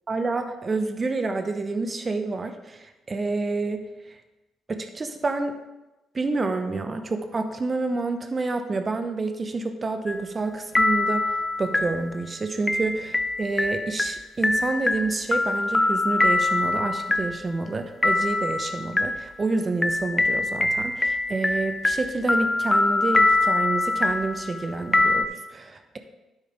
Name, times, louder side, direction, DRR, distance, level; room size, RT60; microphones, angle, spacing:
voice 1, 0.1-3.8 4.7-5.6 6.1-26.0, right 3 dB, 35° right, 8 dB, 0.9 m, -28 dB
sound 1, 10.1-10.5 10.7-25.2, left 2 dB, 20° left, 0.7 m, -24 dB
9.2 x 8.6 x 3.5 m, 1.0 s
hypercardioid pair, 45°, 0 cm